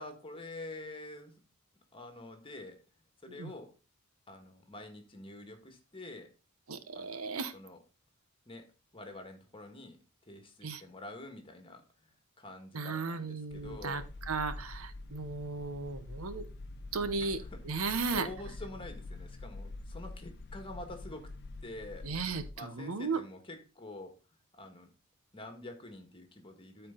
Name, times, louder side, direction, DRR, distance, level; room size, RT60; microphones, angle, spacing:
voice 1, 0.0-1.4 1.9-2.8 3.2-3.7 4.3-6.3 6.9-7.2 7.5-7.8 8.5-10.0 10.3-14.0 17.2-17.7 18.1-21.3 21.6-22.1 22.6-24.9 25.3-26.9, left 2 dB, 25° left, 5 dB, 1.7 m, -47 dB
voice 2, 6.7-7.5 10.6-10.8 12.7-16.5 16.9-17.4 17.6-18.3 22.0-23.2, right 4 dB, 70° right, 11 dB, 0.9 m, -35 dB
sound 1, 13.5-22.5, left 2 dB, 55° left, 0.6 m, -46 dB
12.5 x 4.6 x 3.8 m, 0.32 s
head